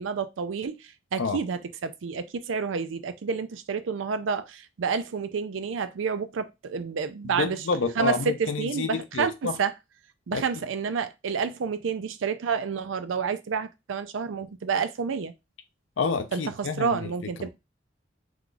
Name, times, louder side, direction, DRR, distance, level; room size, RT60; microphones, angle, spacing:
voice 1, 0.0-7.6 8.0-9.7 10.3-15.3 16.3-17.5, right 6 dB, 85° right, 0.4 m, -29 dB
voice 2, 7.2-9.6 10.3-10.5 16.0-17.5, left 4 dB, 85° left, 0.5 m, -29 dB
3.0 x 2.3 x 3.8 m
head